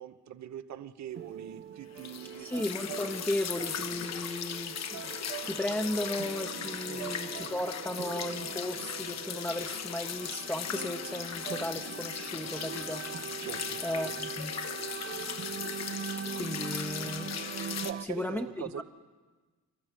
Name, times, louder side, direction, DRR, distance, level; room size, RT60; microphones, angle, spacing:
voice 1, 0.0-2.5 6.9-7.1 13.4-14.1 17.8-18.8, right 10 dB, 60° right, 12 dB, 1.2 m, -42 dB
sound 1, 1.2-18.1, right 8 dB, 40° right, 0.6 m, -42 dB
sound 2, 1.9-10.0 10.7-11.7, right 15 dB, 80° right, 0.7 m, -48 dB
sound 3, 2.0-17.9, left 8 dB, 55° left, 1.2 m, -38 dB
voice 2, 2.4-5.1 5.4-13.1 13.8-14.5 16.3-17.3 18.1-18.5 18.8-18.9, left 1 dB, 5° left, 2 dB, 0.9 m, -35 dB
27.0 x 13.0 x 9.1 m, 1.3 s
cardioid pair, 105°, 31 cm